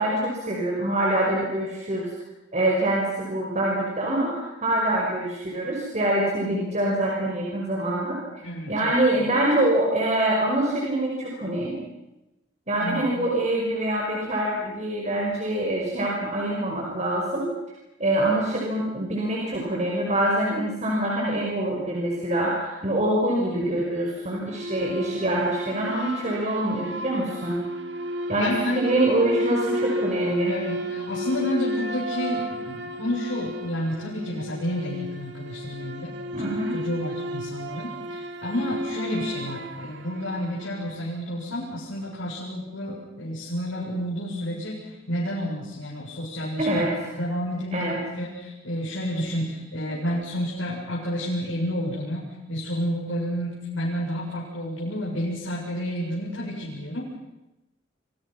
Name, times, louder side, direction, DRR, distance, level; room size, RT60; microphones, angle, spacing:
voice 1, 0.0-2.1 2.5-11.8 12.7-17.5 18.0-27.6 28.3-30.5 36.3-36.7 46.6-47.2 47.7-48.0, right 1 dB, 35° right, -2 dB, 5.6 m, -25 dB
voice 2, 8.4-8.9 12.8-13.0 28.4-28.8 30.5-57.2, equal, 80° left, -5 dB, 7.4 m, -30 dB
sound 1, 24.5-41.1, equal, 65° right, 2.5 m, -33 dB
30.0 x 26.0 x 6.0 m, 0.96 s
head